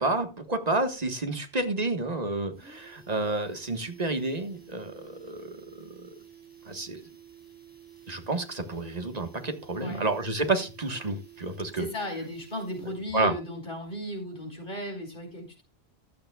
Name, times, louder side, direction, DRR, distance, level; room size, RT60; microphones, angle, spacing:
voice 1, 0.0-6.1 6.6-7.0 8.1-11.9 13.1-13.3, right 2 dB, 40° right, 7 dB, 1.6 m, -30 dB
sound 1, 1.6-1.7 2.0-2.1 2.4-13.2 13.5-13.6, right 9 dB, 10° right, 5.8 m, -52 dB
voice 2, 11.7-15.6, left 1 dB, 55° left, 2 dB, 5.2 m, -35 dB
15.0 x 12.0 x 2.3 m, 0.28 s
omnidirectional pair, 1.1 m